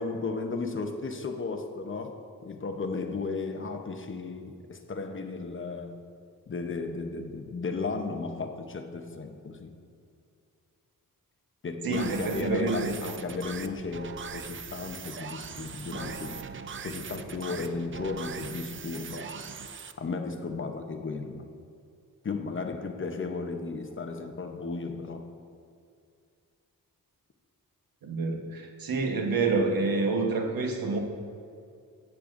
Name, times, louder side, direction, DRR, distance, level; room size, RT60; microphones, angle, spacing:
voice 1, 0.0-6.0 6.5-9.7 11.6-16.4 16.8-19.3 20.0-21.5 22.2-25.3, left 4 dB, 35° left, 5 dB, 0.8 m, -35 dB
voice 2, 11.8-12.9 28.0-31.0, right 3 dB, 80° right, 3 dB, 1.3 m, -28 dB
sound 1, 11.9-19.9, right 6 dB, 35° right, 0.5 m, -40 dB
15.5 x 8.5 x 2.6 m, 2.4 s
wide cardioid pair, 120°, 35 cm